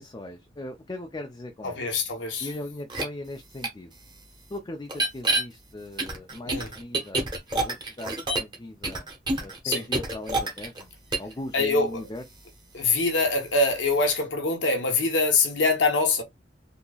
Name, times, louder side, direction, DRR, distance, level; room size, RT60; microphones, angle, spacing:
voice 1, 0.0-1.8 2.4-3.9 4.5-9.1 9.4-10.9 11.2-12.2, left 1 dB, 20° left, 0.5 m, -39 dB
voice 2, 1.6-2.5 6.4-6.7 9.6-9.8 11.5-12.0 12.7-16.2, left 3 dB, 70° left, 1.0 m, -24 dB
sound 1, 2.9-3.0 3.6-3.7 4.9-5.4 6.0-8.6 8.8-10.8 11.1-11.3, right 2 dB, 25° right, 1.2 m, -27 dB
3.8 x 2.9 x 2.3 m
head